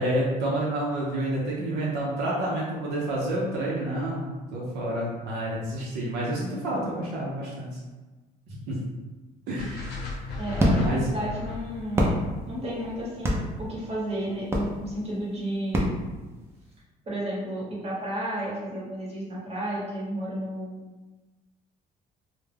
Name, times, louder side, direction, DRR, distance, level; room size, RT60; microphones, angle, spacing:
voice 1, 0.0-7.8 8.7-8.8 9.5-10.2 10.8-11.1, right 1 dB, 85° right, -4 dB, 0.6 m, -29 dB
sound 1, 9.6-13.7, left 3 dB, 80° left, 0.6 m, -36 dB
sound 2, 9.9-16.8, equal, 15° right, 0.5 m, -29 dB
voice 2, 10.4-12.1 12.5-15.9 17.1-20.8, right 1 dB, 40° right, -6 dB, 1.1 m, -32 dB
2.2 x 2.1 x 3.3 m, 1.2 s
cardioid pair, 110°, 17 cm